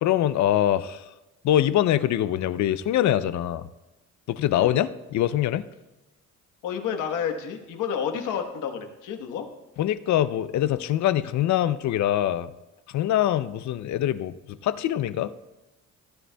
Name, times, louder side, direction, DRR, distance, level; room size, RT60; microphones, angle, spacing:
voice 1, 0.0-1.0 1.4-3.7 4.3-5.6 9.8-12.5 12.9-15.3, left 12 dB, 65° left, 14 dB, 0.5 m, -24 dB
voice 2, 6.6-9.5, left 7 dB, 85° left, 5 dB, 1.2 m, -30 dB
17.0 x 10.0 x 2.3 m, 1.0 s
cardioid pair, 90°, 30 cm